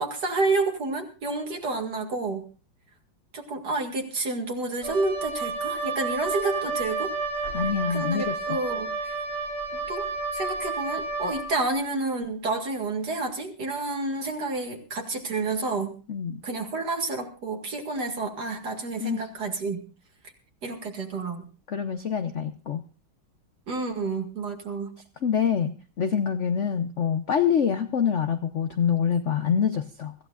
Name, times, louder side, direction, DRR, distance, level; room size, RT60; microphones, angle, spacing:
voice 1, 0.0-2.4 3.3-7.1 7.9-9.1 9.9-16.0 16.4-19.8 20.6-21.5 23.7-25.0, right 3 dB, 50° right, 4 dB, 2.6 m, -29 dB
Wind instrument woodwind instrument, 4.8-11.5, right 3 dB, 30° right, 2.3 m, -31 dB
voice 2, 7.5-8.3 16.1-16.4 19.0-19.3 21.7-22.8 25.2-30.1, left 7 dB, 60° left, 8 dB, 0.8 m, -25 dB
24.5 x 15.0 x 2.4 m, 0.33 s
omnidirectional pair, 2.3 m